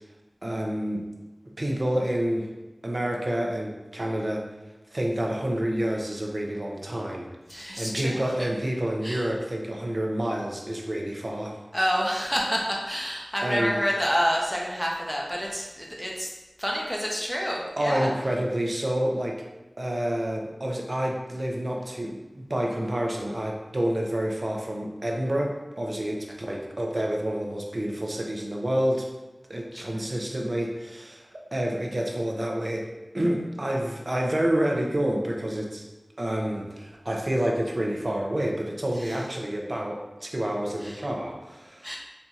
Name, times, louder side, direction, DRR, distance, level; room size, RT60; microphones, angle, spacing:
voice 1, 0.4-1.1 1.6-2.5 2.8-4.5 4.9-7.3 7.8-11.6 13.4-13.8 17.8-19.4 19.8-29.1 29.5-32.9 33.1-35.8 36.2-42.0, right 1 dB, 50° right, 0 dB, 0.5 m, -28 dB
voice 2, 7.5-8.3 9.0-9.3 11.7-16.3 16.6-18.1 29.7-30.0 38.9-39.2 40.8-41.0 41.8-42.0, equal, 5° left, -2 dB, 0.7 m, -28 dB
4.2 x 2.7 x 2.4 m, 1.1 s
wide cardioid pair, 50°, 0 cm